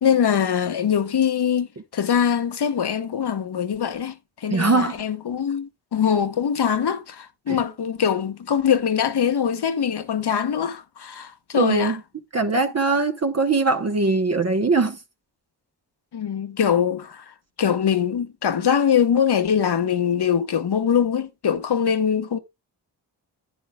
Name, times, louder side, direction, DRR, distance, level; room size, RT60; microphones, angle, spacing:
voice 1, 0.0-1.7 1.9-4.1 4.4-12.0 16.1-17.2 17.6-22.4, left 8 dB, 60° left, 1.2 m, -22 dB
voice 2, 4.5-5.0 7.5-7.6 11.5-12.0 12.3-15.0, right 3 dB, 35° right, 0.9 m, -21 dB
11.0 x 9.2 x 2.2 m
supercardioid pair, 40°, 46 cm